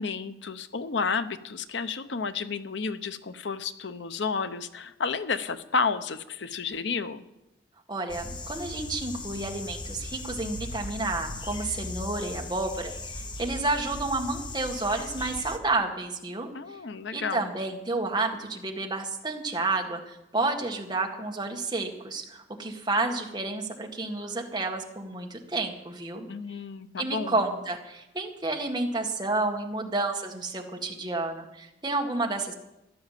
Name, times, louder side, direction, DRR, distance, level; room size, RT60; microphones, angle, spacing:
voice 1, 0.0-7.2 16.5-17.5 26.3-27.3, left 5 dB, 80° left, 12 dB, 0.8 m, -31 dB
voice 2, 7.9-16.5 17.1-26.3 27.0-32.5, right 2 dB, 25° right, 2 dB, 1.8 m, -30 dB
sound 1, 8.1-15.6, left 2 dB, 25° left, 1.0 m, -38 dB
15.0 x 11.5 x 7.5 m, 0.91 s
head